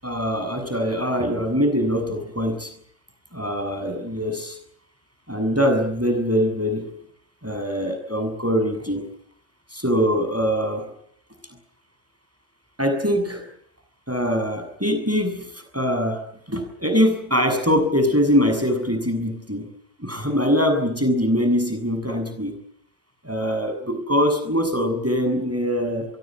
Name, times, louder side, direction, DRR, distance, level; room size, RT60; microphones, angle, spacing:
voice 1, 0.0-2.7 3.3-4.6 5.3-6.9 7.4-9.0 9.7-10.9 12.8-13.4 14.1-16.2 16.5-19.7 20.0-22.5 23.2-26.1, equal, 10° right, 6 dB, 7.2 m, -23 dB
25.5 x 23.0 x 7.6 m, 0.67 s
omnidirectional pair, 1.2 m